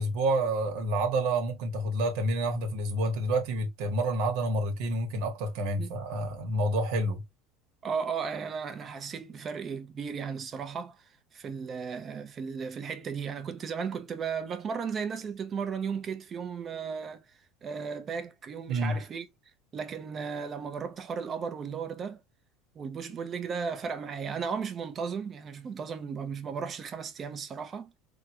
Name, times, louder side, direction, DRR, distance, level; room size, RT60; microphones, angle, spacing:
voice 1, 0.0-7.2 18.7-19.0, right 1 dB, 70° right, 1.3 m, -28 dB
voice 2, 7.8-11.0 11.3-17.2 17.6-19.2 19.7-22.2 22.7-28.0, right 6 dB, 30° right, 0.8 m, -35 dB
3.7 x 2.3 x 2.9 m
supercardioid pair, 125°, 0 cm